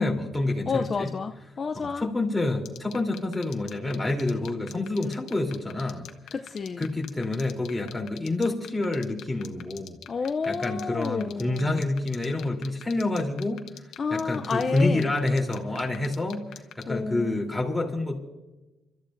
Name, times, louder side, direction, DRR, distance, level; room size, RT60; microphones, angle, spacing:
voice 1, 0.0-1.1 1.7-6.1 6.8-10.0 10.5-13.6 14.1-16.4 16.8-18.2, left 2 dB, 10° left, 0 dB, 3.3 m, -28 dB
voice 2, 0.7-2.1 5.0-5.2 6.3-6.9 10.1-11.8 14.0-15.1 16.9-17.4, left 5 dB, 40° left, 7 dB, 0.5 m, -30 dB
sound 1, 2.6-16.8, left 11 dB, 80° left, 1.0 m, -42 dB
28.5 x 13.5 x 2.6 m, 1.1 s
cardioid pair, 90°, 0 cm